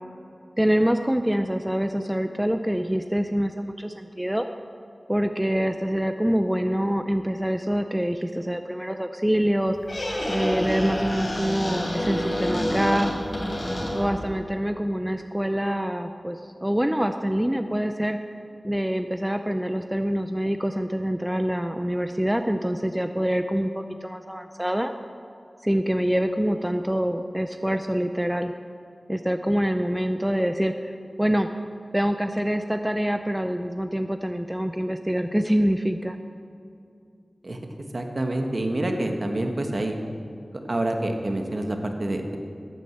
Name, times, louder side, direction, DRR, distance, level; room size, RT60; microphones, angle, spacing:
voice 1, 0.6-4.5 5.1-9.8 10.3-13.1 13.9-18.2 18.6-24.9 25.6-28.5 29.1-31.5 31.9-36.2, equal, 10° right, 7 dB, 0.5 m, -25 dB
Squeak, 9.7-14.3, equal, 60° left, 4.0 m, -28 dB
voice 2, 37.9-39.9 40.7-42.4, right 1 dB, 50° right, 4 dB, 1.4 m, -27 dB
11.5 x 9.0 x 8.0 m, 2.6 s
wide cardioid pair, 80°, 0 cm